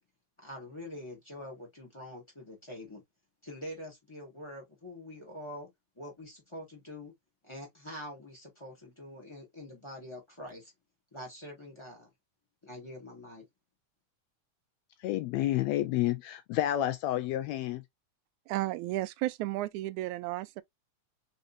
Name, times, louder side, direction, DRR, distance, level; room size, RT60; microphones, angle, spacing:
voice 1, 0.4-3.0 3.4-5.7 5.9-7.1 7.4-10.7 11.1-12.1 12.6-13.4, left 1 dB, 10° left, 1.5 m, -45 dB
voice 2, 15.0-17.8, left 14 dB, 80° left, 1.6 m, -30 dB
voice 3, 18.5-20.6, right 16 dB, 85° right, 2.0 m, -33 dB
4.2 x 3.9 x 2.7 m
omnidirectional pair, 3.4 m